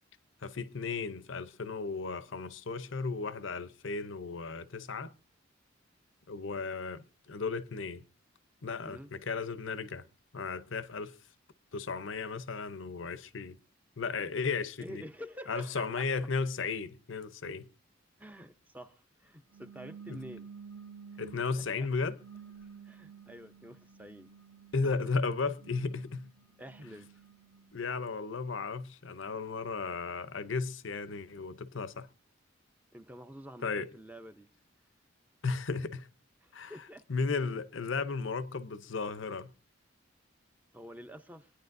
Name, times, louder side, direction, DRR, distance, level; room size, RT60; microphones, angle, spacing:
voice 1, 0.4-5.1 6.3-8.0 8.6-10.1 10.3-11.2 11.7-13.6 14.0-15.0 15.5-17.7 20.1-20.2 21.2-22.2 24.7-26.3 27.7-32.1 33.6-33.9 35.4-36.1 36.5-36.7 37.1-39.5, left 4 dB, 70° left, 0.7 m, -35 dB
voice 2, 14.8-16.3 18.2-20.5 21.1-21.2 21.8-21.9 22.8-24.3 24.8-25.2 26.6-27.2 32.9-34.5 36.4-37.1 40.7-41.5, equal, 10° right, 0.6 m, -48 dB
sound 1, 19.5-21.6 22.2-24.9 25.4-27.7, right 6 dB, 50° right, 1.6 m, -51 dB
25.5 x 10.0 x 2.6 m
head